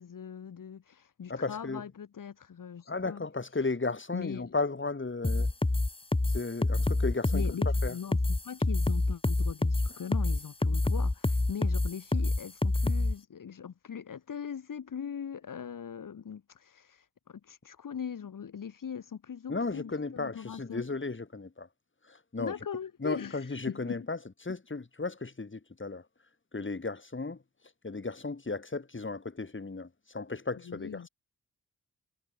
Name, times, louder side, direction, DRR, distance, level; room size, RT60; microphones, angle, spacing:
voice 1, 0.0-3.3 4.1-4.5 7.3-8.2 8.4-20.8 22.4-24.0 30.6-31.1, left 7 dB, 65° left, 2.4 m, -40 dB
voice 2, 1.3-1.8 2.9-5.5 6.3-7.5 7.8-8.0 19.5-21.7 22.0-22.5 23.0-26.1 26.5-27.4 27.8-31.1, left 3 dB, 35° left, 7.1 m, -35 dB
sound 1, 5.2-13.1, left 2 dB, 15° left, 1.3 m, -27 dB
cardioid pair, 60°, 34 cm